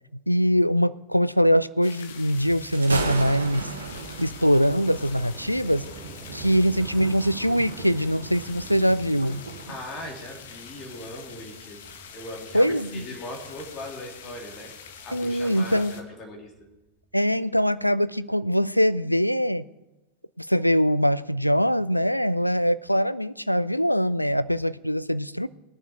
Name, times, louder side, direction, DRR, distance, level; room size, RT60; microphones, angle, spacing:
voice 1, 0.3-3.7 4.2-5.9 6.3-9.5 12.5-13.1 15.1-15.9 17.1-19.7 20.4-25.5, equal, 90° left, 0.3 m, -23 dB
sound 1, 1.8-16.0, left 7 dB, 60° left, 1.0 m, -45 dB
sound 2, 2.3-17.2, right 4 dB, 30° right, 2.5 m, -48 dB
Thunder, 2.5-9.8, right 4 dB, 75° right, 1.2 m, -36 dB
voice 2, 9.7-11.8 12.1-14.7 15.0-16.5, left 1 dB, 30° left, 3.2 m, -39 dB
20.0 x 7.1 x 4.7 m
figure-of-eight pair, 90°, 0 cm